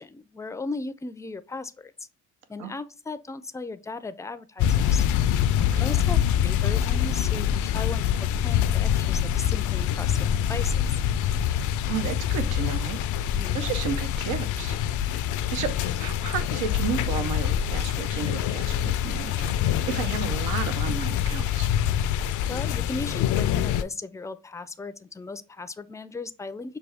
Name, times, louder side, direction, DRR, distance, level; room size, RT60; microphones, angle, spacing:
voice 1, 0.0-2.1 2.5-5.0 5.8-8.1 8.4-10.8 13.3-13.6 22.5-26.8, left 3 dB, 10° left, 0.4 m, -36 dB
sound 1, 4.6-23.8, left 10 dB, 80° left, 0.5 m, -25 dB
voice 2, 5.6-5.9 11.8-13.0 13.5-14.8 15.5-21.7, right 7 dB, 85° right, 0.6 m, -33 dB
5.9 x 2.3 x 3.4 m
cardioid pair, 90°, 30 cm